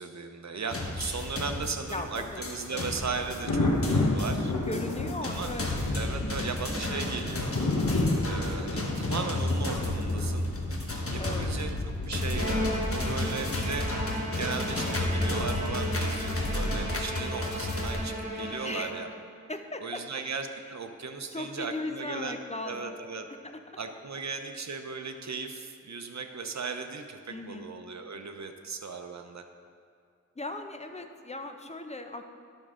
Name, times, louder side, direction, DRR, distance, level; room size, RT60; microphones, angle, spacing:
voice 1, 0.0-3.7 4.0-4.5 5.3-5.5 5.9-7.5 8.3-10.5 11.1-11.8 12.0-12.6 12.9-14.1 14.4-19.1 19.8-22.4 22.6-23.3 23.8-29.4, right 4 dB, 60° right, 6 dB, 0.7 m, -37 dB
sound 1, 0.7-18.0, left 1 dB, 45° left, 1.2 m, -32 dB
voice 2, 1.9-2.9 4.7-5.7 6.2-6.6 11.2-11.5 18.6-18.9 19.5-20.2 21.3-23.0 23.4-23.5 27.3-27.7 30.4-32.3, left 2 dB, 20° left, 6 dB, 0.6 m, -38 dB
Thunder, 2.0-15.6 17.3-17.5, left 2 dB, 85° left, 1.0 m, -32 dB
Bowed string instrument, 12.3-19.3, equal, 20° right, 1.6 m, -35 dB
11.5 x 6.3 x 3.7 m, 2.3 s
wide cardioid pair, 50°, 31 cm